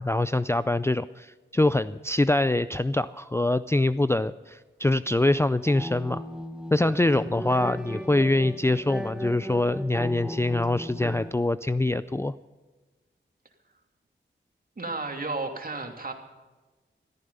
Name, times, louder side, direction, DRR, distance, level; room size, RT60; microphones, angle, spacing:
voice 1, 0.0-6.2 6.7-12.3, left 2 dB, 15° left, 13 dB, 0.4 m, -24 dB
sound 1, 5.6-11.3, equal, 5° right, 1.2 m, -36 dB
voice 2, 14.8-16.1, right 3 dB, 45° right, 3 dB, 2.7 m, -33 dB
14.5 x 14.0 x 5.5 m, 1.3 s
cardioid pair, 60°, 21 cm